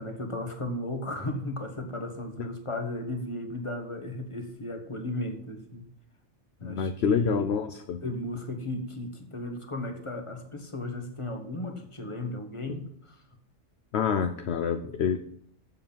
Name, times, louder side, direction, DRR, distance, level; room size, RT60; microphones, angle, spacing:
voice 1, 0.0-5.8 6.6-7.5 8.0-13.2, left 1 dB, 25° left, 5 dB, 1.5 m, -35 dB
voice 2, 6.6-8.0 12.7-12.8 13.9-15.2, left 7 dB, 60° left, 8 dB, 0.8 m, -27 dB
7.6 x 7.0 x 7.3 m, 0.71 s
omnidirectional pair, 1.3 m